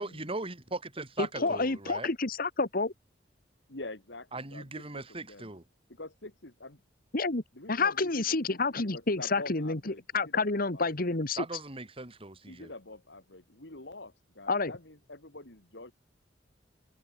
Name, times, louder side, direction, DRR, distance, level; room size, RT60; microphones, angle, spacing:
voice 1, 0.0-2.1 4.3-5.6 11.4-12.7, right 2 dB, 30° right, 2.8 m, -39 dB
voice 2, 1.2-2.9 7.1-7.4 7.7-11.4 14.5-14.7, left 3 dB, 55° left, 1.9 m, -29 dB
voice 3, 3.7-5.5 5.9-6.8 7.5-10.9 12.5-15.9, left 2 dB, 70° left, 3.5 m, -46 dB
head